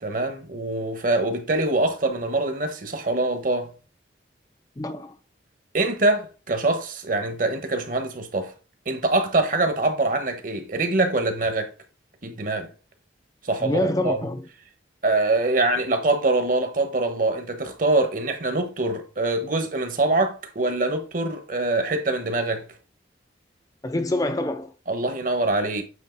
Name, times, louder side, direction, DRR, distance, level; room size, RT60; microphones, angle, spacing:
voice 1, 0.0-3.7 5.7-8.5 8.8-11.7 12.2-12.7 13.4-14.3 15.0-22.6 24.9-25.8, right 2 dB, 45° right, 1.2 m, -24 dB
voice 2, 4.8-5.2 13.6-14.4 23.8-24.7, left 1 dB, 20° left, 0.5 m, -26 dB
8.3 x 3.0 x 4.5 m
head